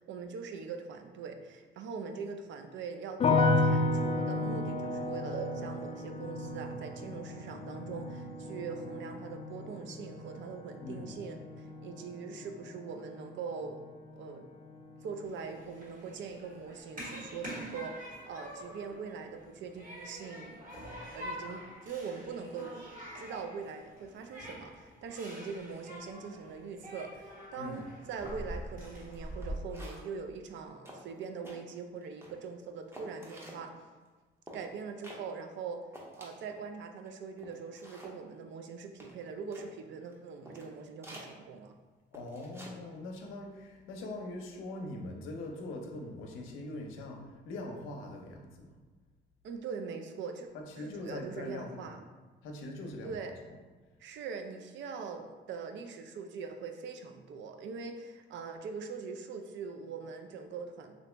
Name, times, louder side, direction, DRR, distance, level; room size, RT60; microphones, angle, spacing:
voice 1, 0.0-13.8 14.1-14.4 15.0-20.6 21.0-22.8 23.2-33.7 34.5-35.8 36.2-41.7 49.4-50.5 50.8-52.0 53.0-53.3 54.0-60.9, right 5 dB, 70° right, 5 dB, 0.4 m, -42 dB
sound 1, 3.2-14.3 14.5-15.3, left 2 dB, 30° left, 0.4 m, -33 dB
voice 2, 10.8-11.2 27.5-27.9 42.1-48.7 50.5-51.9 52.4-53.6, left 2 dB, 90° left, 2 dB, 0.5 m, -42 dB
Human group actions, 15.2-29.5, equal, 45° right, 1.5 m, -46 dB
sound 2, 29.1-29.2 29.4-30.2 30.6-30.7 30.8-31.6 32.0-32.5 32.9-33.6 34.5-34.7 35.0-35.2 35.6-35.7 35.9-36.6 37.0-37.1 37.4-38.2 39.0-39.7 40.1-40.2 40.5-40.7 41.0-41.3 42.1-42.8 43.0-43.3, equal, 10° right, 0.7 m, -50 dB
2.9 x 2.5 x 3.2 m, 1.3 s
cardioid pair, 90°, 20 cm